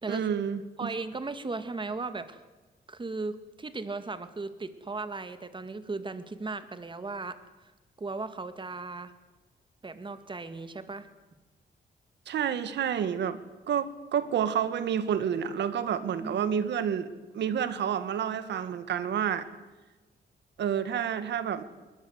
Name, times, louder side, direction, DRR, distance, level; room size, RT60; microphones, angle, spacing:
voice 1, 0.1-0.9 12.3-13.4 13.7-17.1 17.3-19.5 20.6-21.6, right 8 dB, 85° right, 12 dB, 1.8 m, -29 dB
voice 2, 0.8-2.4 2.9-7.7 8.0-9.1 9.8-11.1 16.2-16.6, right 3 dB, 30° right, 11 dB, 2.1 m, -37 dB
21.0 x 20.0 x 8.2 m, 1.2 s
cardioid pair, 90°, 18 cm